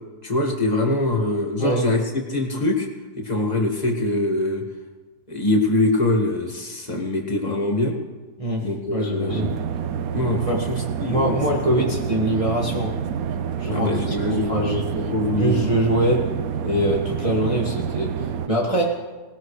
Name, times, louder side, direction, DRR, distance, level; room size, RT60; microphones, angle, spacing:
voice 1, 0.2-2.9 3.2-4.6 5.3-8.0 8.6-9.5 10.1-11.4 11.8-11.9 13.7-14.5 14.9-15.6, left 2 dB, 25° left, 1 dB, 1.9 m, -23 dB
voice 2, 8.4-9.6 10.4-10.7 11.1-13.0 13.6-14.8 15.4-16.3 16.6-19.0, right 1 dB, 20° right, -2 dB, 1.7 m, -23 dB
sound 1, 9.3-18.5, right 8 dB, 70° right, 1.0 m, -28 dB
19.5 x 18.5 x 3.3 m, 1.2 s
omnidirectional pair, 1.7 m